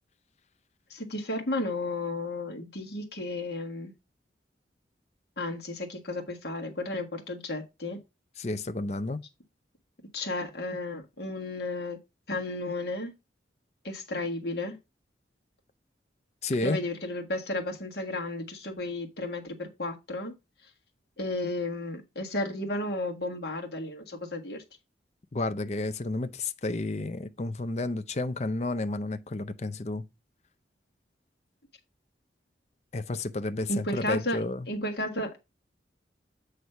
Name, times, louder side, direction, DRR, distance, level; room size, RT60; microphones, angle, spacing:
voice 1, 0.9-3.9 5.4-8.0 10.1-12.0 12.3-13.1 13.8-14.8 16.6-20.3 21.2-24.6 33.7-34.4 34.7-35.4, left 2 dB, 60° left, 1.7 m, -33 dB
voice 2, 8.4-9.2 16.4-16.8 25.3-30.1 32.9-34.7, left 2 dB, 35° left, 0.5 m, -31 dB
7.9 x 3.3 x 5.6 m
head